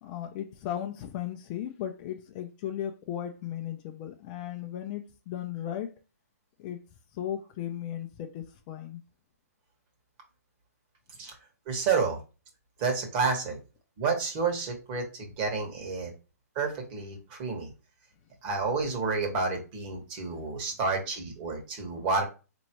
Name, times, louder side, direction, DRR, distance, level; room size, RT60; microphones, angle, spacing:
voice 1, 0.0-5.9 6.6-6.8 7.1-9.0, left 11 dB, 30° left, 0.5 m, -36 dB
voice 2, 11.6-12.2 12.8-13.6 14.0-16.1 16.5-17.7 18.4-22.2, right 4 dB, 35° right, 1.5 m, -30 dB
4.3 x 3.1 x 3.0 m
hypercardioid pair, 145°, 9 cm